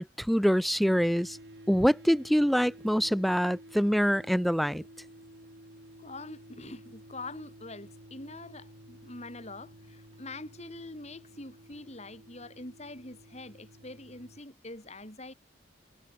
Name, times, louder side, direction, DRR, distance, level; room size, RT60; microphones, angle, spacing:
voice 1, 0.0-1.4 1.7-4.8, equal, ahead, 0.6 m, -25 dB
sound 1, 0.8-14.4, right 1 dB, 60° right, 5.0 m, -52 dB
voice 2, 6.0-15.3, left 2 dB, 35° left, 6.4 m, -44 dB
head